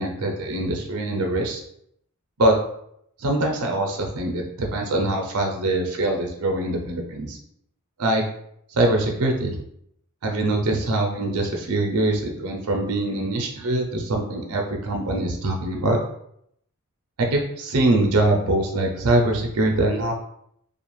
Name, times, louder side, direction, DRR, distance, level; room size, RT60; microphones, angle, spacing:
voice 1, 0.0-1.6 2.4-2.6 3.2-7.4 8.0-8.2 8.7-9.6 10.2-16.0 17.2-20.1, right 2 dB, 85° right, 1 dB, 0.6 m, -23 dB
2.5 x 2.4 x 3.0 m, 0.72 s
head